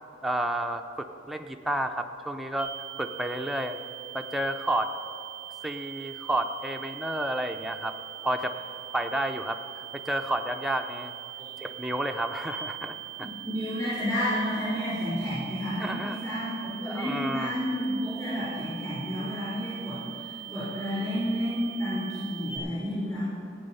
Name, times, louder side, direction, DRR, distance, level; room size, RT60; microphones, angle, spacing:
voice 1, 0.2-2.7 3.0-3.8 4.1-4.9 5.6-7.9 8.2-8.6 8.9-9.6 9.9-11.1 11.6-13.3 15.8-16.2 16.9-17.5, right 1 dB, ahead, 4 dB, 0.5 m, -31 dB
sound 1, 2.6-22.6, right 13 dB, 65° left, 3.0 m, -42 dB
voice 2, 13.4-23.3, equal, 20° left, -11 dB, 3.9 m, -31 dB
15.0 x 9.6 x 5.6 m, 2.6 s
head